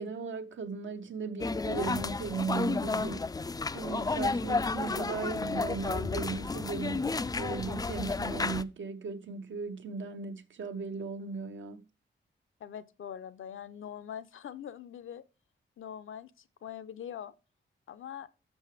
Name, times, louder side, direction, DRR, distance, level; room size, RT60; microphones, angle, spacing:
voice 1, 0.0-3.3 3.7-11.8, right 5 dB, 70° right, 0.9 m, -37 dB
sound 1, 1.4-8.6, left 3 dB, 20° left, 0.3 m, -32 dB
voice 2, 12.6-15.2 15.8-16.3 16.6-17.3 17.9-18.3, left 9 dB, 80° left, 0.7 m, -43 dB
6.6 x 6.2 x 5.0 m
cardioid pair, 85°, 20 cm